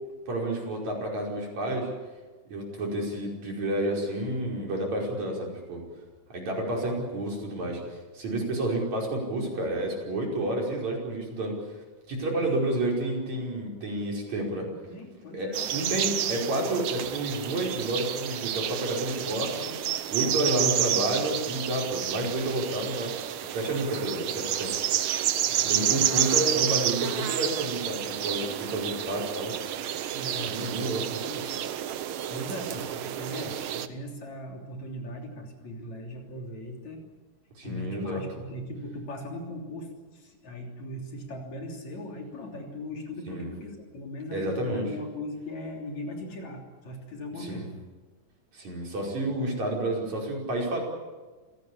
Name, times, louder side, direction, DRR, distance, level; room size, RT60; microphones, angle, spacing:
voice 1, 0.3-1.9 2.5-5.8 6.3-11.6 12.1-14.7 15.3-23.1 23.5-24.7 25.6-29.6 30.4-31.2 37.6-38.2 43.3-43.5 44.3-44.9 47.4-47.7 48.5-50.8, right 1 dB, 60° right, -1 dB, 6.4 m, -30 dB
voice 2, 8.4-8.8 12.1-12.5 14.6-16.5 20.3-20.6 23.7-24.3 25.5-26.1 26.4-26.6 30.1-31.6 32.3-37.0 37.6-47.7, left 1 dB, 60° left, 2 dB, 4.5 m, -39 dB
sound 1, 15.5-33.9, right 10 dB, 80° right, 1.1 m, -30 dB
27.0 x 17.5 x 8.6 m, 1.3 s
omnidirectional pair, 3.7 m